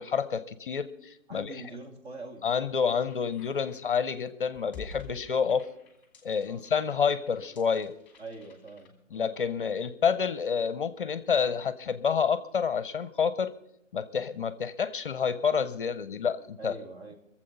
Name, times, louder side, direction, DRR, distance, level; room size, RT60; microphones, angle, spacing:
voice 1, 0.0-1.6 2.4-5.7 6.2-7.9 9.1-13.5 13.9-16.7, left 6 dB, 40° left, 14 dB, 0.6 m, -28 dB
voice 2, 1.3-2.4 5.1-5.2 6.4-6.7 8.2-9.3 16.6-17.2, right 3 dB, 55° right, 3 dB, 3.0 m, -44 dB
sound 1, 3.1-8.9, left 4 dB, 5° left, 1.5 m, -50 dB
22.0 x 7.5 x 5.3 m, 0.80 s
hypercardioid pair, 155°, 39 cm